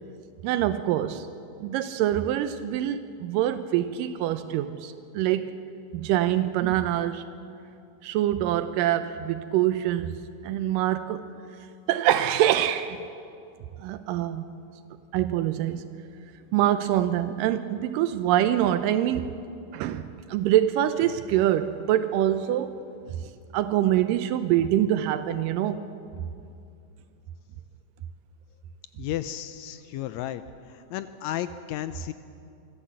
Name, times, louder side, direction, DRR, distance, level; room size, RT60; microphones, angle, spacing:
voice 1, 0.4-1.3 1.6-5.6 5.9-7.3 8.0-10.2 10.4-11.2 11.9-13.0 13.8-14.4 15.1-15.9 16.5-19.3 19.7-20.0 20.3-22.8 23.5-25.8, right 12 dB, 85° right, 10 dB, 2.3 m, -25 dB
voice 2, 29.0-30.4 30.9-32.1, left 12 dB, 90° left, 11 dB, 1.6 m, -33 dB
24.5 x 14.5 x 7.7 m, 2.5 s
omnidirectional pair, 3.8 m